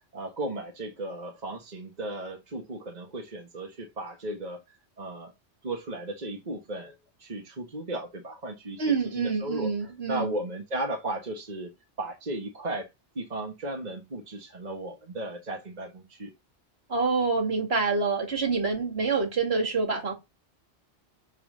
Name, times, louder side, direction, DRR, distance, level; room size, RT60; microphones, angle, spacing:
voice 1, 0.0-4.6 5.0-5.3 5.6-6.9 7.2-9.7 10.1-11.7 12.0-12.9 13.1-16.3, right 1 dB, 40° right, 1.5 m, -35 dB
voice 2, 8.8-10.4 16.9-20.1, right 4 dB, 65° right, 2.5 m, -26 dB
7.3 x 3.6 x 6.1 m
omnidirectional pair, 1.2 m